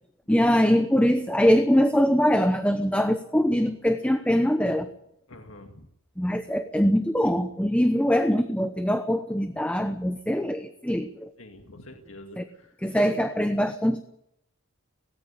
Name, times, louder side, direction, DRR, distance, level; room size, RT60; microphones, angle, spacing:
voice 1, 0.3-4.9 6.2-11.3 12.4-12.5 12.8-14.1, equal, 5° left, 8 dB, 0.9 m, -23 dB
voice 2, 5.3-5.9 11.4-12.7 13.0-13.1, left 1 dB, 70° left, 4 dB, 2.1 m, -45 dB
18.0 x 17.5 x 8.4 m, 0.76 s
head